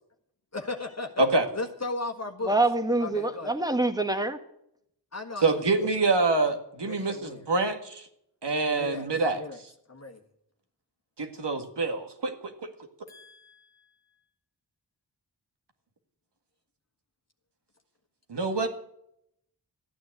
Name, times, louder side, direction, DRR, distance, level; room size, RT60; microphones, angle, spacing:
voice 1, 0.5-1.3 1.5-2.5 3.0-3.6 5.1-5.9 6.9-7.4 8.6-9.1 9.3-9.6 9.9-10.2 13.1-13.9, left 3 dB, 35° left, 3 dB, 1.5 m, -36 dB
voice 2, 2.4-4.4, right 2 dB, 10° right, 7 dB, 1.7 m, -25 dB
voice 3, 5.4-8.1 8.4-9.4 11.2-12.7 18.3-18.7, right 3 dB, 70° right, 6 dB, 2.0 m, -26 dB
14.0 x 9.2 x 7.8 m, 0.76 s
cardioid pair, 45°, 43 cm